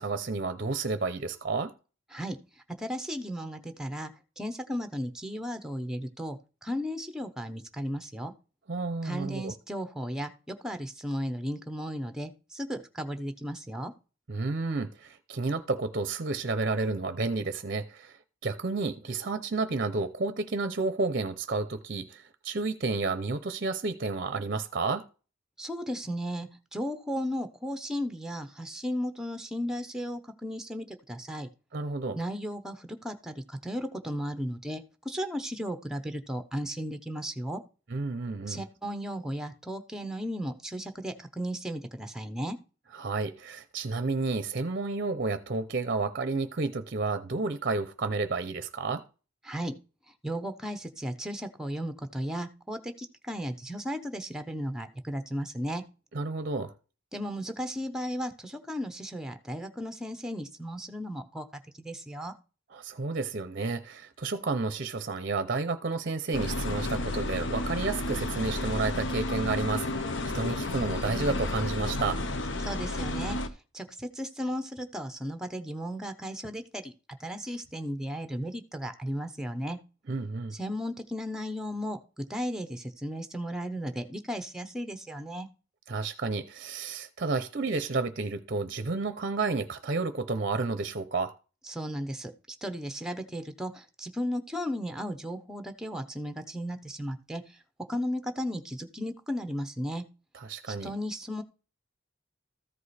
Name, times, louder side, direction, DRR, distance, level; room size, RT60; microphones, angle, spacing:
voice 1, 0.0-1.7 8.7-9.5 14.3-25.1 31.7-32.2 37.9-38.6 42.9-49.0 56.1-56.7 62.7-72.2 80.1-80.6 85.9-91.3 100.3-100.9, right 3 dB, 45° right, 0.6 m, -31 dB
voice 2, 2.1-4.1 4.4-8.3 9.0-13.9 25.6-31.5 32.1-37.6 38.5-42.6 49.4-49.8 50.2-55.8 57.1-61.5 61.7-62.3 72.6-76.9 77.2-79.8 80.5-85.5 91.7-97.6 97.9-100.0 100.7-101.4, equal, 5° right, 0.8 m, -35 dB
sound 1, 66.3-73.5, left 2 dB, 65° left, 0.8 m, -32 dB
14.0 x 4.9 x 4.2 m
head